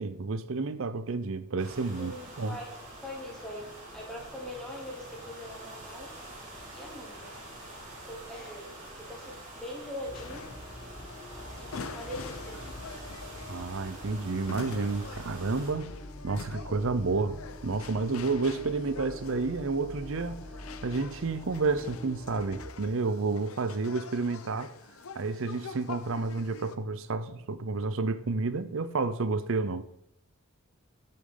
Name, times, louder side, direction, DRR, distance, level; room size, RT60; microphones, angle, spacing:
voice 1, 0.0-2.6 13.5-15.9 16.2-20.4 20.8-24.7 25.1-29.8, right 3 dB, 65° right, 0.6 m, -30 dB
sound 1, 1.6-15.7, right 1 dB, 35° right, 3.6 m, -46 dB
voice 2, 2.0-6.1 6.7-7.4 8.0-10.5 11.6-12.6, left 1 dB, 5° left, 2.9 m, -42 dB
sound 2, 10.0-22.6, left 1 dB, 30° left, 4.5 m, -45 dB
sound 3, 10.1-26.8, left 4 dB, 90° left, 0.8 m, -46 dB
15.5 x 6.7 x 3.9 m
head